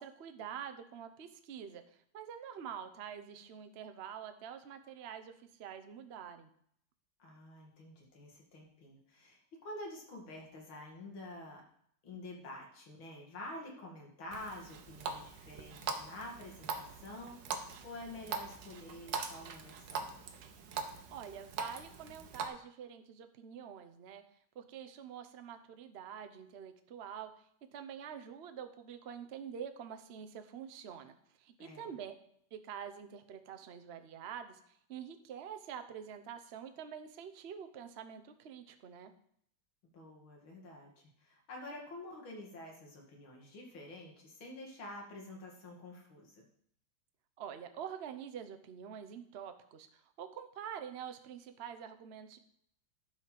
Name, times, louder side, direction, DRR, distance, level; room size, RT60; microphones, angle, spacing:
voice 1, 0.0-6.5 21.1-24.2 24.5-32.1 32.5-39.1 47.4-52.4, right 8 dB, 80° right, 8 dB, 0.5 m, -46 dB
voice 2, 7.2-11.6 12.0-20.2 31.6-31.9 39.8-46.4, left 1 dB, 70° left, -1 dB, 3.0 m, -48 dB
Water tap faucet, 14.3-22.5, right 5 dB, 65° right, 1.5 m, -42 dB
11.5 x 5.0 x 5.8 m, 0.67 s
omnidirectional pair, 2.3 m